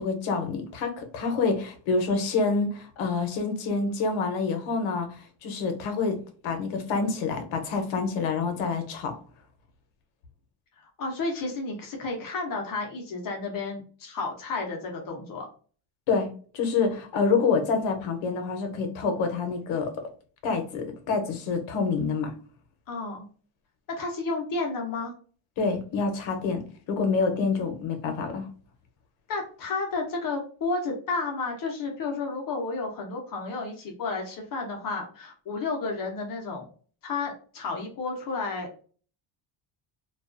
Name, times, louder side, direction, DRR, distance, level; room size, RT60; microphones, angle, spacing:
voice 1, 0.0-6.2 6.4-9.2 16.1-16.3 16.5-19.9 20.4-22.3 25.6-28.5, left 4 dB, 85° left, 5 dB, 0.8 m, -27 dB
voice 2, 10.8-15.5 22.9-23.3 23.9-25.1 29.3-36.7 37.0-38.8, left 3 dB, 45° left, 1 dB, 0.6 m, -32 dB
2.3 x 2.2 x 2.4 m, 0.41 s
cardioid pair, 155°, 46 cm